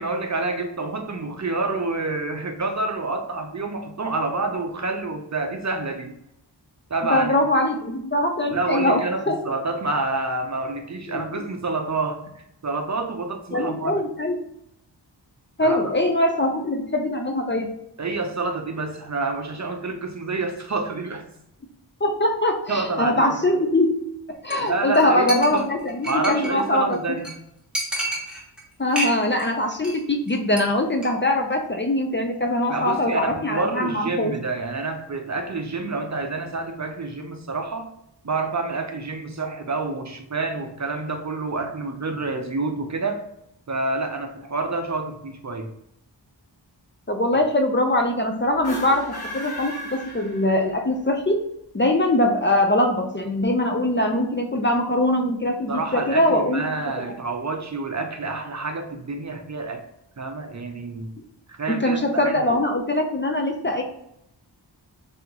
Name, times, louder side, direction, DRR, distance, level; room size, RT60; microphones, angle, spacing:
voice 1, 0.0-6.1 6.9-7.4 8.5-12.2 12.6-14.0 15.6-15.9 18.0-21.2 22.7-23.6 24.6-25.7 26.1-27.4 32.7-37.9 38.2-43.2 43.7-45.7 55.7-59.9 60.2-61.1 61.5-62.4, right 3 dB, 40° right, 5 dB, 0.5 m, -28 dB
voice 2, 7.1-9.0 9.3-9.4 11.1-11.4 13.5-14.4 15.6-17.7 22.0-24.0 24.4-27.0 28.8-34.4 47.1-51.5 51.7-56.6 61.7-63.8, left 1 dB, 25° left, 3 dB, 0.5 m, -22 dB
Chink clink, 24.5-24.7 24.9-25.0 25.3-26.6 26.9-27.0 27.2-27.3 27.7-28.6 28.9-29.5 29.7-30.0 30.3-30.6 30.9-31.1, right 1 dB, ahead, 1.2 m, -29 dB
sound 1, 48.5-50.9, equal, 60° left, 1.0 m, -35 dB
3.4 x 2.9 x 3.9 m, 0.79 s
wide cardioid pair, 60°, 44 cm